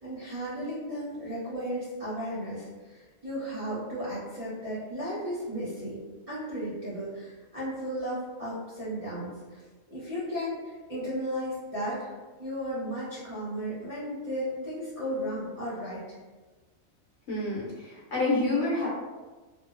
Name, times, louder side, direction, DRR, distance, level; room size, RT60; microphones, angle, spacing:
voice 1, 0.0-6.0 6.3-9.6 9.9-16.2, equal, 35° right, -12 dB, 0.7 m, -35 dB
voice 2, 17.3-18.9, left 2 dB, 60° left, -7 dB, 0.9 m, -28 dB
2.8 x 2.1 x 2.4 m, 1.3 s
omnidirectional pair, 1.4 m